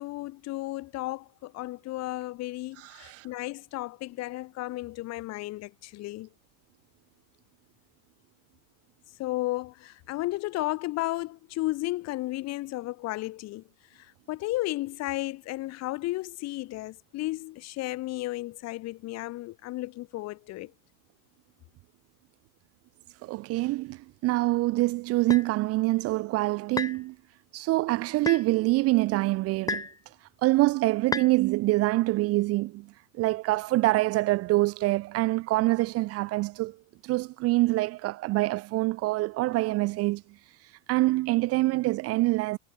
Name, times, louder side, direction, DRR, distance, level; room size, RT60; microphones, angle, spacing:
voice 1, 0.0-6.3 9.2-13.6 14.3-20.7, left 18 dB, 40° left, 1.6 m, -33 dB
voice 2, 2.8-3.3 23.2-27.2 27.5-29.9 30.4-36.8 37.0-40.2 40.9-42.6, right 20 dB, 35° right, 0.7 m, -25 dB
sound 1, 25.3-25.5 26.8-27.0 28.3-28.5 29.7-30.0 31.1-31.3, left 4 dB, 10° left, 1.1 m, -31 dB
supercardioid pair, 145°, 40 cm